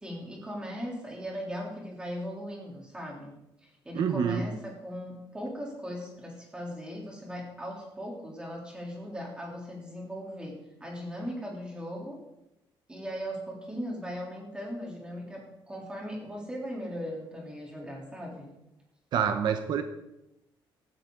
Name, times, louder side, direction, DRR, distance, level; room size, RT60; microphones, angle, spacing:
voice 1, 0.0-3.3 3.6-12.2 12.9-18.5, equal, 10° right, -2 dB, 3.6 m, -38 dB
voice 2, 3.9-4.4 19.1-19.8, right 7 dB, 55° right, 7 dB, 1.1 m, -27 dB
18.0 x 13.5 x 4.0 m, 0.90 s
cardioid pair, 180°, 9 cm